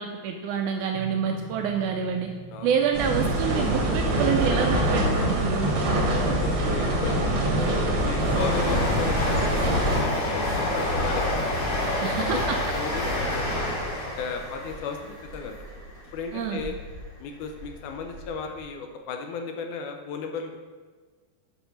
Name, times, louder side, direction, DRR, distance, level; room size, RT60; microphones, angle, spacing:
voice 1, 0.0-2.3 2.6-5.8 12.0-12.6 16.3-16.6, right 7 dB, 85° right, 3 dB, 1.7 m, -27 dB
sound 1, 0.9-10.7, right 6 dB, 65° left, 3.5 m, -47 dB
sound 2, 2.9-10.0, right 1 dB, 60° right, 1.4 m, -24 dB
voice 2, 6.1-11.3 12.0-12.4 12.8-13.7 14.2-15.6 16.1-16.7 17.2-20.6, left 5 dB, 80° left, 4 dB, 1.9 m, -35 dB
Train, 7.5-17.0 17.4-18.3 18.6-18.7, left 1 dB, 45° left, 2.3 m, -29 dB
7.9 x 4.3 x 6.3 m, 1.5 s
omnidirectional pair, 4.0 m